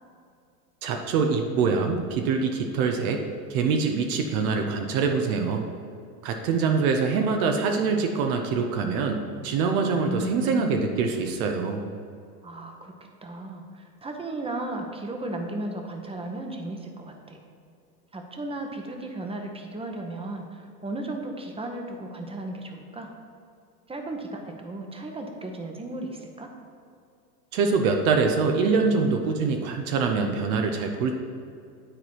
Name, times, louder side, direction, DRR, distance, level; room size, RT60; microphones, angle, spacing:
voice 1, 0.8-3.2 3.5-5.7 6.2-11.8 27.5-31.1, right 5 dB, 60° right, 4 dB, 0.9 m, -24 dB
voice 2, 10.0-10.9 12.4-12.9 13.2-17.4 18.1-23.1 23.9-26.5, right 2 dB, 10° right, 3 dB, 1.0 m, -35 dB
9.7 x 4.1 x 4.6 m, 2.4 s
hypercardioid pair, 95°, 49 cm